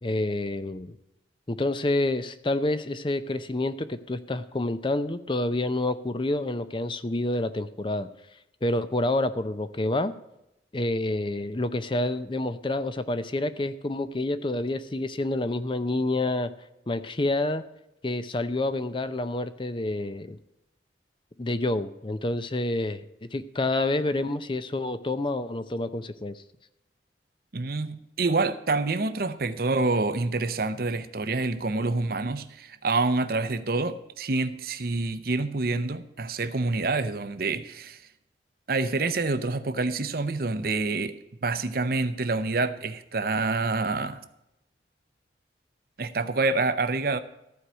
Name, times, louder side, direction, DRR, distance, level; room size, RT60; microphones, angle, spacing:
voice 1, 0.0-0.9 1.5-8.1 8.6-10.1 10.7-16.5 16.9-17.6 18.0-20.4 21.4-23.0 23.3-26.4, left 2 dB, 30° left, 0.6 m, -28 dB
voice 2, 27.5-38.0 38.7-41.2 41.4-44.2 46.0-47.2, right 3 dB, 55° right, 0.7 m, -27 dB
14.0 x 4.8 x 8.8 m
head